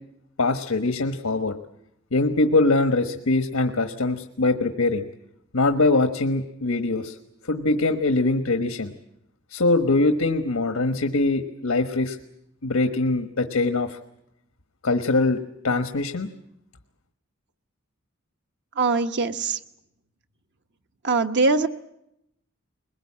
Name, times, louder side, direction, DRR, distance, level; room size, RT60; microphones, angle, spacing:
voice 1, 0.4-1.5 2.1-5.1 5.5-7.2 7.5-8.9 9.5-12.2 12.6-14.0 14.8-15.4 15.6-16.3, left 2 dB, 90° left, 7 dB, 1.3 m, -22 dB
voice 2, 18.8-19.6 21.0-21.7, right 3 dB, 55° right, 7 dB, 1.2 m, -22 dB
22.0 x 20.5 x 8.6 m, 0.81 s
head